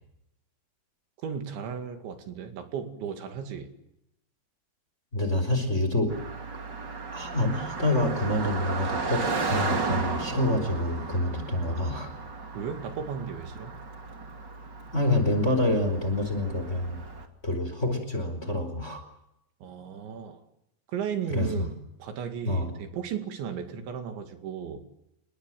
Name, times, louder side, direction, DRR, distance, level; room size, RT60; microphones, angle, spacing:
voice 1, 1.2-3.7 12.5-13.8 19.6-20.4 20.9-24.9, right 7 dB, 75° right, 4.5 m, -35 dB
voice 2, 5.1-6.1 7.1-12.1 14.9-17.0 17.4-19.0 21.3-21.7 22.5-22.7, left 1 dB, 15° left, 4.2 m, -27 dB
Car passing by, 6.1-17.3, right 4 dB, 30° right, 2.4 m, -34 dB
29.5 x 20.5 x 7.7 m
omnidirectional pair, 5.4 m